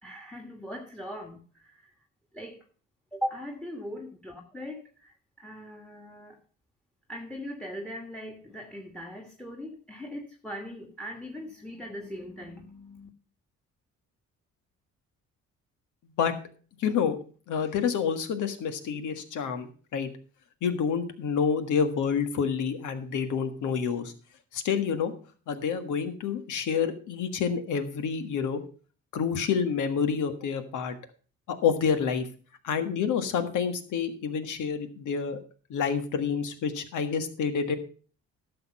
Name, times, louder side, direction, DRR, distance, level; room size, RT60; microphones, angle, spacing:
voice 1, 0.0-1.9 2.3-2.7 3.1-6.4 7.1-13.1, equal, 5° left, 4 dB, 1.6 m, -40 dB
voice 2, 16.8-17.2 17.5-20.1 20.6-24.1 24.5-25.1 25.5-28.6 29.1-30.9 31.5-32.3 32.6-35.4 35.7-37.8, left 6 dB, 80° left, 9 dB, 1.6 m, -28 dB
12.0 x 6.9 x 5.5 m, 0.40 s
cardioid pair, 90°, 30 cm